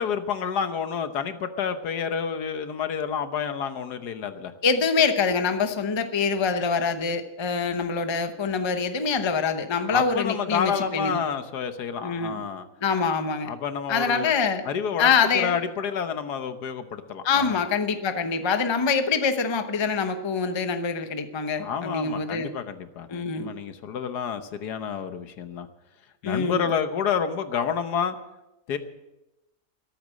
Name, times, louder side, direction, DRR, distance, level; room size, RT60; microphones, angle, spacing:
voice 1, 0.0-4.5 9.9-12.7 13.4-14.3 14.6-15.1 15.3-17.6 21.6-25.7 26.2-28.2 28.7-28.8, left 7 dB, 75° left, 9 dB, 1.5 m, -29 dB
voice 2, 4.6-11.2 12.0-12.4 12.8-13.5 13.9-14.6 15.0-15.6 17.2-22.5 23.1-23.5 26.2-26.7, left 5 dB, 25° left, 8 dB, 0.6 m, -25 dB
13.5 x 12.5 x 6.4 m, 0.96 s
omnidirectional pair, 1.8 m